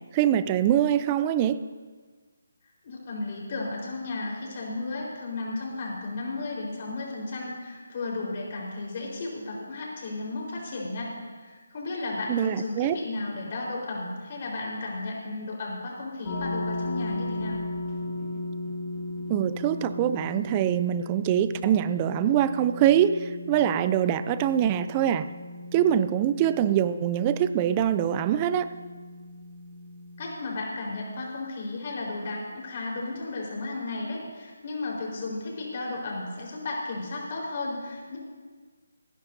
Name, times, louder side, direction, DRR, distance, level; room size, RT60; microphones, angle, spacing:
voice 1, 0.1-1.6 12.3-13.0 19.3-25.3 25.7-28.7, right 10 dB, 20° right, 14 dB, 0.4 m, -24 dB
voice 2, 2.8-17.6 30.2-38.2, left 2 dB, 40° left, -3 dB, 4.5 m, -34 dB
sound 1, 16.2-30.3, left 2 dB, 25° left, 2.1 m, -36 dB
28.0 x 10.5 x 2.8 m, 1.5 s
figure-of-eight pair, 160°, 0 cm